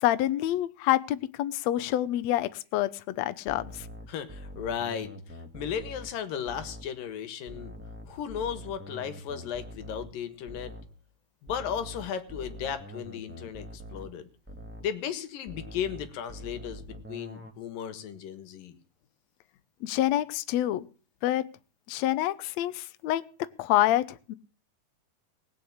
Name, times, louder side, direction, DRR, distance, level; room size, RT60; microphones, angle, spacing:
voice 1, 0.0-3.9 19.8-20.8 21.2-21.4 21.9-23.2 23.6-24.3, left 14 dB, 85° left, 13 dB, 1.5 m, -27 dB
sound 1, 3.5-7.0 7.5-11.0 11.5-15.0 15.5-17.5, equal, 5° right, 1.4 m, -44 dB
voice 2, 4.1-5.1 5.5-7.7 8.1-10.7 11.4-14.3 14.8-18.7, left 8 dB, 70° left, 11 dB, 3.0 m, -35 dB
20.0 x 6.9 x 8.6 m, 0.38 s
omnidirectional pair, 4.3 m